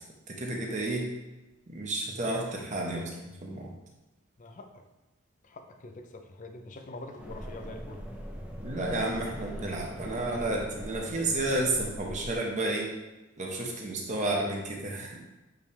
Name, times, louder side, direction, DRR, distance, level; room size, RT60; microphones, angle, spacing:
voice 1, 0.3-1.1 1.7-3.7 8.6-12.9 13.4-15.3, right 2 dB, 35° right, 0 dB, 1.0 m, -31 dB
voice 2, 4.4-4.8 5.4-8.0, left 2 dB, 40° left, 5 dB, 0.6 m, -45 dB
sound 1, 7.2-12.3, equal, 5° right, 0.6 m, -41 dB
8.2 x 3.4 x 3.4 m, 1.1 s
head